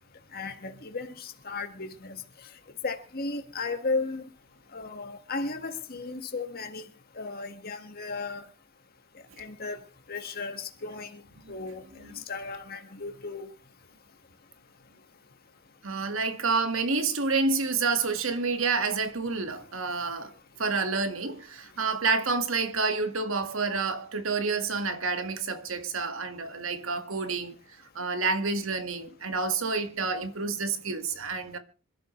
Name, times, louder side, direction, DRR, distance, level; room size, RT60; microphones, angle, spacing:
voice 1, 0.3-2.2 2.8-4.3 4.7-6.9 7.2-8.4 9.4-9.8 10.1-11.2 11.5-11.8 12.3-13.4, left 3 dB, 50° left, 1.8 m, -35 dB
voice 2, 15.8-20.3 20.6-27.5 28.0-31.6, right 4 dB, 80° right, 1.8 m, -29 dB
26.5 x 12.0 x 3.2 m
head